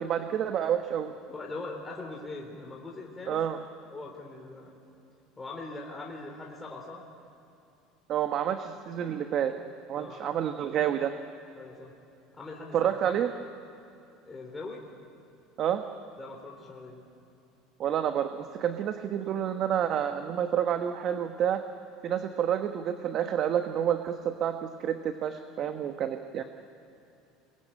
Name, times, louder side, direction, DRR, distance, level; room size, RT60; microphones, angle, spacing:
voice 1, 0.0-1.1 3.3-3.6 8.1-9.5 9.9-11.1 12.7-13.3 15.6-15.8 17.8-21.6 22.0-26.4, right 9 dB, 45° right, 7 dB, 1.2 m, -29 dB
voice 2, 1.3-3.4 3.9-4.7 5.4-7.0 9.9-10.4 11.5-11.9 12.3-12.9 14.3-14.8 16.2-17.0, left 3 dB, 15° left, -1 dB, 3.6 m, -41 dB
25.0 x 21.5 x 8.9 m, 2.8 s
supercardioid pair, 115°, 0 cm